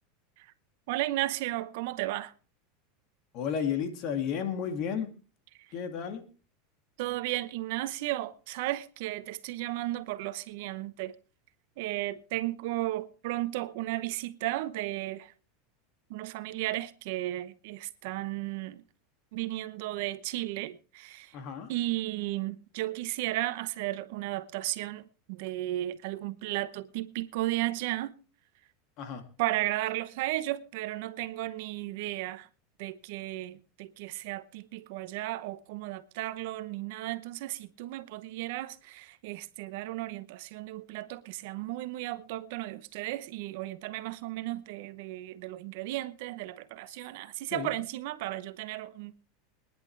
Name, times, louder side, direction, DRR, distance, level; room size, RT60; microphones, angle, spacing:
voice 1, 0.9-2.3 7.0-11.1 11.8-15.3 16.1-18.8 19.3-21.3 21.7-25.0 25.3-28.1 29.4-32.5 32.8-49.2, right 16 dB, 65° right, 0.9 m, -34 dB
voice 2, 3.3-5.1 5.7-6.2 21.3-21.7 29.0-29.2 47.5-47.8, left 7 dB, 50° left, 2.3 m, -32 dB
22.5 x 10.5 x 3.3 m
supercardioid pair, 125°, 0 cm